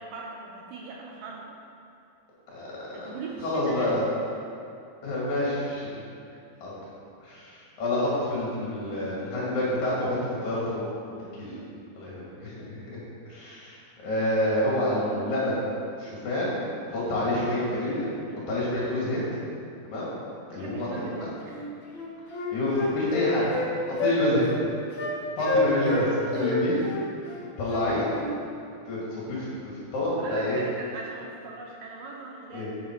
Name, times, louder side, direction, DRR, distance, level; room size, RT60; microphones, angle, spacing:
voice 1, 0.0-1.6 2.9-4.0 6.3-6.4 11.4-11.8 20.5-21.7 25.0-25.2 26.3-26.6 30.2-32.7, right 4 dB, 80° right, -1 dB, 2.0 m, -40 dB
voice 2, 2.5-3.1 3.4-4.1 5.0-5.9 6.6-6.7 7.2-10.8 11.4-11.5 12.0-13.0 13.3-13.8 14.0-15.7 16.0-16.6 16.9-18.1 18.5-19.2 19.8-20.1 20.5-21.3 22.5-23.6 24.0-24.5 25.4-26.1 26.3-26.8 27.6-28.1 28.8-30.6 32.5-32.7, left 1 dB, 50° left, -6 dB, 3.2 m, -28 dB
Wind instrument woodwind instrument, 21.5-21.6 21.9-23.7 24.0-24.2 24.5-24.6 25.0-25.1 25.4-26.1 26.4-28.3, left 3 dB, 75° left, 1.1 m, -29 dB
10.5 x 7.4 x 4.6 m, 2.5 s
omnidirectional pair, 4.8 m